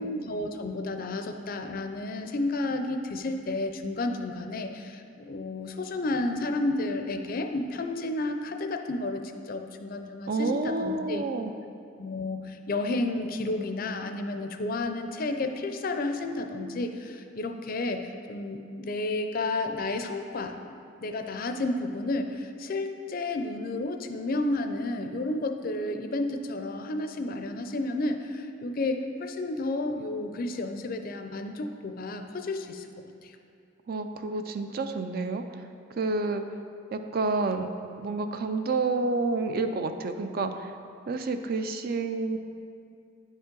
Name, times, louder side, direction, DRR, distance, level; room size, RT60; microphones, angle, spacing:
voice 1, 0.0-11.2 12.0-20.6 21.0-32.9 33.2-33.3, left 2 dB, 45° left, 6 dB, 0.4 m, -31 dB
voice 2, 10.3-11.5 33.9-35.4 36.0-36.4 36.9-37.7 38.0-40.7 41.1-42.4, right 3 dB, 50° right, 7 dB, 0.4 m, -29 dB
9.9 x 5.2 x 3.8 m, 2.4 s
head